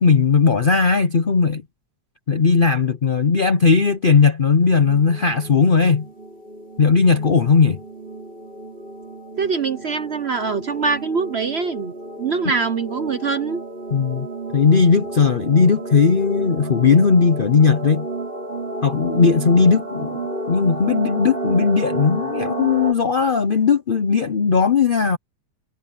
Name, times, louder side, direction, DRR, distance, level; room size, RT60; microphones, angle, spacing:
voice 1, 0.0-1.6 2.3-6.1 6.8-7.8 13.9-14.3 14.5-18.1 18.8-20.2 20.5-25.2, left 5 dB, 50° left, 0.6 m, -17 dB
sound 1, 4.6-22.9, right 2 dB, 30° right, 4.5 m, -32 dB
voice 2, 9.4-13.6 19.1-19.2, right 5 dB, 50° right, 0.9 m, -24 dB
omnidirectional pair, 1.9 m